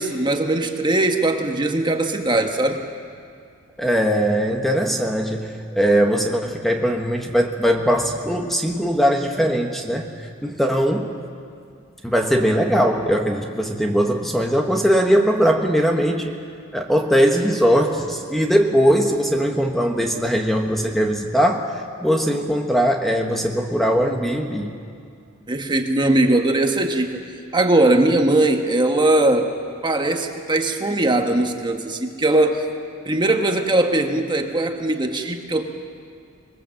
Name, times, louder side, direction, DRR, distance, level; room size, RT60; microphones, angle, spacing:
voice 1, 0.0-2.8 25.5-29.5 29.8-32.7 33.0-35.6, right 2 dB, 20° right, 4 dB, 1.4 m, -20 dB
voice 2, 3.8-10.1 10.4-11.1 12.0-16.4 16.7-24.8, equal, ahead, 2 dB, 1.3 m, -20 dB
26.0 x 20.5 x 7.7 m, 2.3 s
head